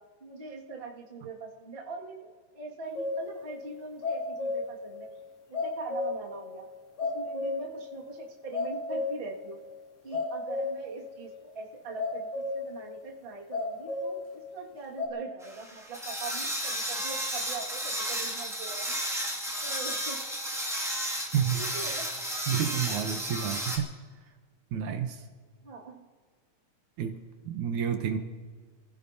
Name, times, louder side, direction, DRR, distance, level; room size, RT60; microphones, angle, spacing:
voice 1, 0.2-5.1 5.5-6.6 7.0-9.6 10.0-18.9 19.6-20.2 21.5-22.1 25.6-26.1, right 3 dB, 25° right, -3 dB, 1.5 m, -42 dB
sound 1, 3.0-3.3 3.8-4.8 5.1-5.2 5.5-6.3 6.7-6.8 7.0-7.8 8.1-8.2 8.5-9.3 9.6-9.8 10.1-10.9 11.2-11.4 12.0-12.7 13.5-14.2 15.0-15.1, left 3 dB, 90° left, 3.9 m, -32 dB
sound 2, 15.4-23.8, equal, ahead, 1.3 m, -33 dB
voice 2, 21.3-21.7 22.5-23.9 24.7-25.3 27.0-27.2 27.5-28.2, right 8 dB, 75° right, 6 dB, 2.2 m, -29 dB
28.0 x 16.0 x 2.7 m, 1.5 s
omnidirectional pair, 3.7 m